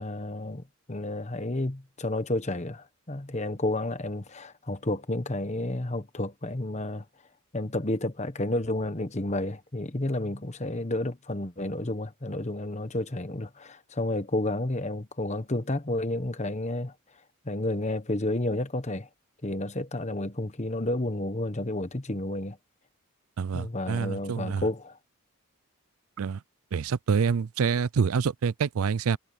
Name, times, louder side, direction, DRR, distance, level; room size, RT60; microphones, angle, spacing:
voice 1, 0.0-7.0 7.5-16.9 17.4-19.1 19.4-22.6 23.5-25.0, left 1 dB, 30° left, 1.2 m, -31 dB
voice 2, 23.4-24.6 26.2-26.4 26.7-29.2, right 6 dB, 75° right, 0.4 m, -27 dB
head